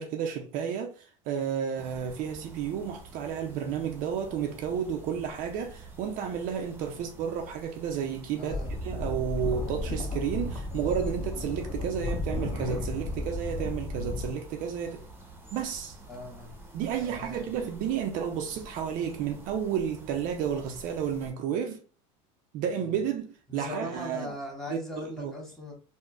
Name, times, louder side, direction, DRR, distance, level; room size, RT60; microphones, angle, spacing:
voice 1, 0.0-15.0 15.5-16.0 16.7-21.8 22.5-24.3 24.7-25.3, right 8 dB, 55° right, 0.5 m, -32 dB
sound 1, 1.8-21.3, right 2 dB, 15° right, 0.8 m, -49 dB
voice 2, 8.4-8.7 16.1-16.5 17.0-17.4 23.5-25.8, left 1 dB, ahead, 1.4 m, -39 dB
sound 2, 8.5-14.3, left 2 dB, 25° left, 1.1 m, -33 dB
3.6 x 2.1 x 2.4 m
supercardioid pair, 100°, 16 cm